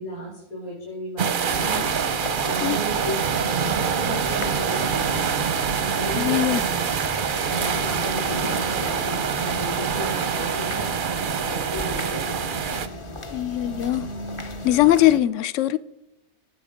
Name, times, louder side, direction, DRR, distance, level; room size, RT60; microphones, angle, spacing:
voice 1, 0.0-1.9 2.4-5.6 5.9-12.5, right 1 dB, 90° left, 4.1 m, -34 dB
sound 1, 1.2-12.9, right 7 dB, 45° right, 0.7 m, -25 dB
sound 2, 1.5-15.2, left 1 dB, 25° left, 0.9 m, -35 dB
voice 2, 6.2-6.6 13.3-14.1 14.6-15.8, left 14 dB, 60° left, 0.9 m, -20 dB
19.0 x 8.4 x 5.1 m
omnidirectional pair, 1.6 m